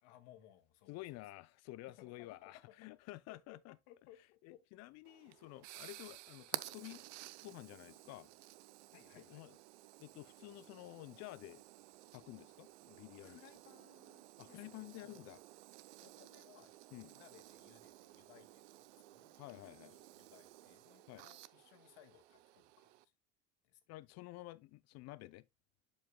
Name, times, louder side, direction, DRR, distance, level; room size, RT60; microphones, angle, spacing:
voice 1, 0.0-1.0 1.9-2.7 3.3-4.6 8.9-9.5 13.2-15.3 16.0-16.8 17.1-19.4 19.6-23.1 23.6-23.8, left 12 dB, 70° left, 1.8 m, -63 dB
voice 2, 0.9-3.7 4.4-7.1 7.4-8.3 9.2-9.5 10.0-11.6 12.1-13.4 14.4-15.4 16.9-17.1 19.3-19.9 21.1-21.3 23.9-25.5, left 18 dB, 50° left, 0.5 m, -51 dB
sound 1, 5.1-23.0, right 17 dB, 75° right, 0.7 m, -54 dB
11.5 x 5.3 x 2.2 m
hypercardioid pair, 90°, 35 cm